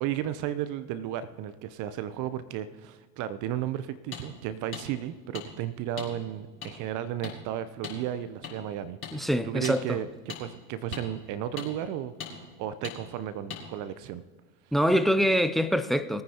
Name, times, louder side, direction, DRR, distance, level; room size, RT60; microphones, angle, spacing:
voice 1, 0.0-9.0 9.4-14.2, right 11 dB, 45° right, 0.7 m, -34 dB
sound 1, 4.1-4.2 4.7-4.8 5.3-5.5 6.0-6.1 6.6-6.7 7.2-7.4 7.8-8.0 8.4-8.5 9.0-9.1 9.6-9.8 10.3-10.4 10.9-11.0 11.6-11.7 12.2-12.3 12.8-13.0 13.5-13.6, left 7 dB, 30° left, 4.6 m, -38 dB
voice 2, 9.1-10.0 14.7-16.2, equal, ahead, 0.3 m, -24 dB
22.5 x 9.4 x 2.9 m
hypercardioid pair, 85°, 43 cm